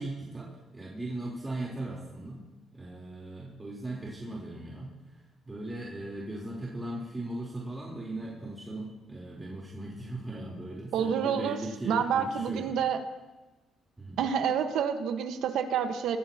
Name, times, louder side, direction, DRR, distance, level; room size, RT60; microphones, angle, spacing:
voice 1, 0.0-2.5 2.7-12.8 14.0-14.2, right 2 dB, 15° right, -5 dB, 3.9 m, -38 dB
voice 2, 10.9-11.6 11.9-13.0 14.2-16.2, right 7 dB, 85° right, 6 dB, 1.4 m, -28 dB
24.0 x 15.0 x 3.0 m, 1.1 s
cardioid pair, 90°, 0 cm